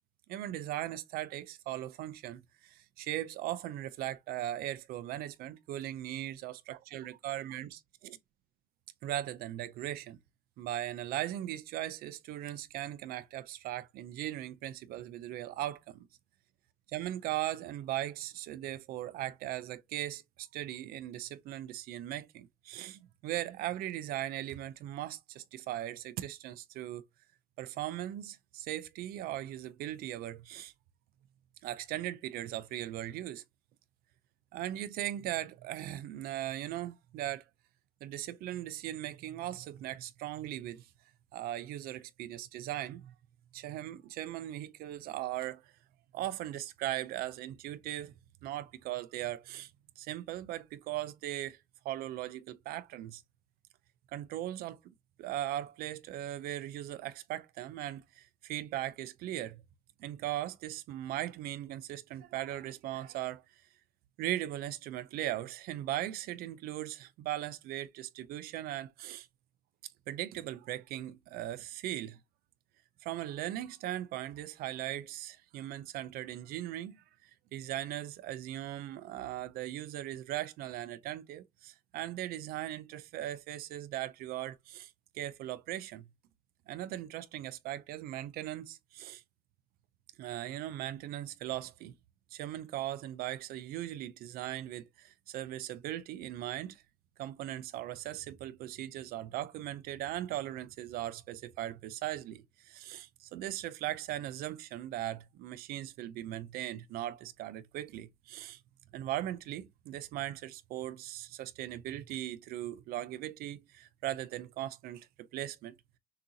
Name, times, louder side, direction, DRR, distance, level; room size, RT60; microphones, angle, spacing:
voice 1, 0.3-8.2 9.0-10.2 10.6-16.1 16.9-27.0 27.6-30.7 31.6-33.4 34.5-37.4 38.0-40.9 41.3-43.1 43.5-45.7 46.1-48.1 48.4-49.7 50.0-51.6 51.8-53.2 54.1-59.6 60.0-63.4 64.2-69.3 70.1-72.2 73.0-86.1 86.7-89.2 90.2-91.9 92.3-96.8 97.2-108.6 108.9-115.7, right 13 dB, 75° right, 0.5 m, -39 dB
6.5 x 2.8 x 2.6 m
cardioid pair, 105°, 16 cm